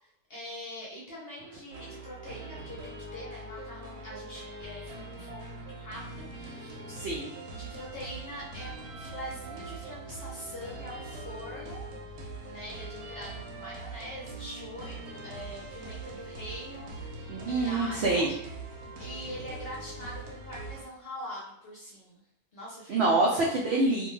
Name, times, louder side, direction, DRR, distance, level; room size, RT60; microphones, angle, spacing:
voice 1, 0.0-6.8 7.5-11.8 12.4-18.3 19.0-22.2 22.5-23.6, equal, 50° left, -5 dB, 0.8 m, -43 dB
sound 1, 1.7-20.9, right 2 dB, 85° right, 1.2 m, -42 dB
voice 2, 6.9-7.3 17.3-18.3 22.9-24.1, right 2 dB, 70° right, -3 dB, 0.6 m, -26 dB
2.6 x 2.2 x 3.0 m, 0.76 s
omnidirectional pair, 1.6 m